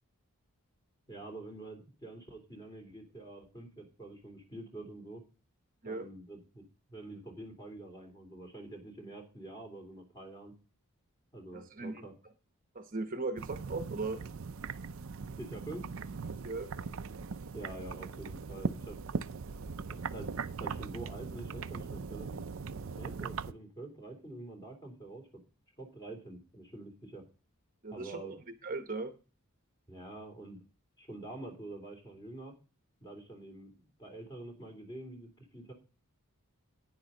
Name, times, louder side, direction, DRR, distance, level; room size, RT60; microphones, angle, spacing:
voice 1, 1.1-5.2 5.8-6.6 6.9-10.5 11.3-12.1 15.4-15.9 17.5-19.0 19.9-20.3 20.6-22.4 22.9-25.2 25.8-27.2 27.9-28.3 29.9-30.6 31.0-32.5 33.0-35.7, right 2 dB, 20° left, 3 dB, 3.3 m, -46 dB
voice 2, 11.5-12.0 12.7-14.2 16.4-16.7 27.8-29.1, right 3 dB, 40° right, 6 dB, 1.0 m, -38 dB
sound 1, 13.4-23.5, right 5 dB, 60° right, 0.5 m, -40 dB
10.5 x 9.9 x 3.9 m, 0.33 s
head